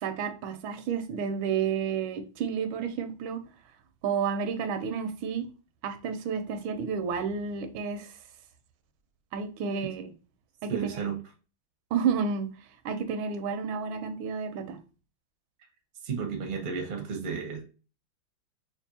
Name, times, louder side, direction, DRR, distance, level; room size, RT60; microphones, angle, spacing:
voice 1, 0.0-3.4 4.0-5.5 5.8-8.1 9.3-10.1 10.6-10.7 11.9-12.5 12.8-14.8, right 6 dB, 85° right, 1.4 m, -31 dB
voice 2, 10.7-11.2 16.0-17.6, right 6 dB, 50° right, 0.5 m, -33 dB
5.2 x 2.5 x 2.7 m
omnidirectional pair, 2.1 m